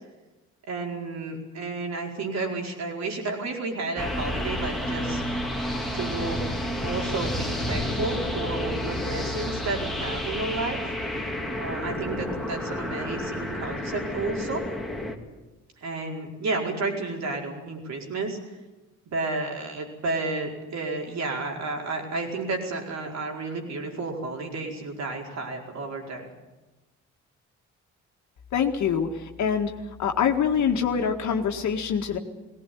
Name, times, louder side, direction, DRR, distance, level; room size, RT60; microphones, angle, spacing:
voice 1, 0.7-5.2 5.9-6.4 6.8-10.8 11.6-14.6 15.8-18.4 19.0-26.3, right 3 dB, 60° right, 1 dB, 4.9 m, -31 dB
sound 1, 4.0-15.2, left 1 dB, ahead, 2.6 m, -30 dB
voice 2, 28.5-29.7 30.0-32.2, left 7 dB, 70° left, 2 dB, 2.0 m, -25 dB
18.5 x 18.0 x 9.5 m, 1.1 s
cardioid pair, 90°, 30 cm